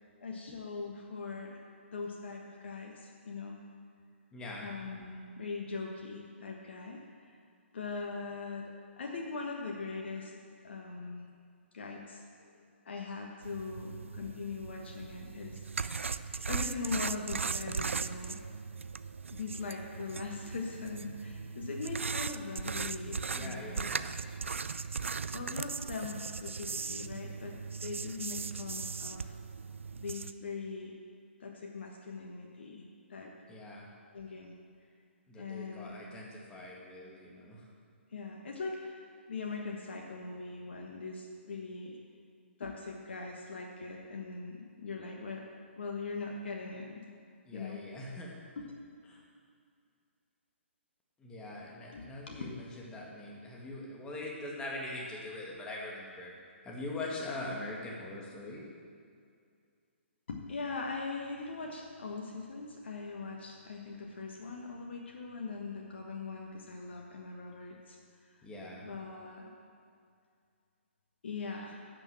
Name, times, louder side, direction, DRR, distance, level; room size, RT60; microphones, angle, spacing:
voice 1, 0.2-1.6 1.9-3.6 4.6-7.4 7.7-10.3 10.6-11.3 11.7-12.5 12.8-15.6 16.5-18.4 19.3-23.9 25.3-29.4 29.9-30.9 31.4-32.8 33.1-33.3 34.1-34.5 35.3-36.0 38.1-42.0 42.6-45.4 45.8-47.1 47.5-47.8 48.6-48.7 51.9-52.4 60.3-68.0 68.3-68.4 68.8-69.5 71.2-71.8, left 4 dB, 60° left, 0 dB, 1.3 m, -41 dB
voice 2, 4.3-4.7 23.3-24.2 33.5-33.9 35.3-37.7 47.5-48.3 49.1-49.2 51.2-56.3 56.7-58.6 68.4-68.9, left 2 dB, 15° left, -3 dB, 2.0 m, -42 dB
sound 1, 13.4-30.3, right 5 dB, 75° right, 0.4 m, -38 dB
10.5 x 6.4 x 7.5 m, 2.3 s
figure-of-eight pair, 130°, 7 cm